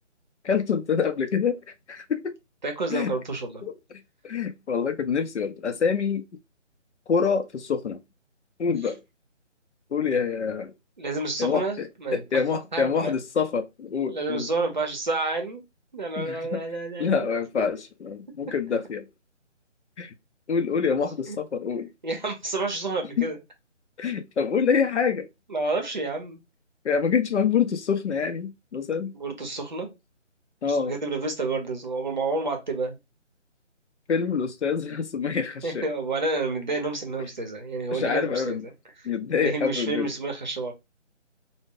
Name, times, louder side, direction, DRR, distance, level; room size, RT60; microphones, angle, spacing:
voice 1, 0.4-1.6 1.9-2.3 2.9-3.1 3.6-3.7 4.2-6.2 7.1-8.0 8.6-9.0 9.9-10.7 11.4-14.5 16.2-16.6 17.0-19.1 20.0-20.1 20.5-21.9 23.2-23.3 24.0-25.3 26.8-29.1 30.6-30.9 34.1-35.9 37.9-38.7 39.0-40.1, left 6 dB, 70° left, 0.6 m, -26 dB
voice 2, 2.6-3.6 11.0-12.4 12.7-13.1 14.1-15.6 15.9-17.3 17.6-17.7 21.3-21.4 22.0-23.4 25.5-26.4 29.1-29.9 30.6-33.0 35.6-38.7 39.4-40.7, right 3 dB, 40° right, 0.6 m, -29 dB
2.0 x 2.0 x 3.6 m
figure-of-eight pair, 165°, 37 cm